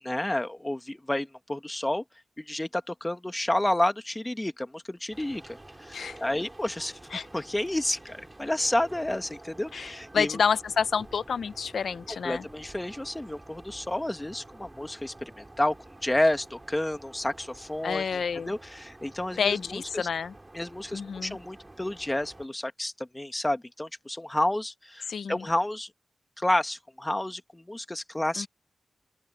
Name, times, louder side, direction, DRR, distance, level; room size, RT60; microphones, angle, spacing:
voice 1, 0.0-2.0 2.4-10.4 12.2-15.7 16.0-20.1 20.5-25.9 26.4-28.5, left 1 dB, 15° left, 1.6 m, -30 dB
sound 1, 5.1-22.5, right 2 dB, 25° right, 3.4 m, -49 dB
voice 2, 9.7-12.4 17.8-18.5 19.4-20.3 20.9-21.4 25.1-25.5 28.4-28.5, left 6 dB, 80° left, 0.9 m, -29 dB
open air
cardioid pair, 45°, 0 cm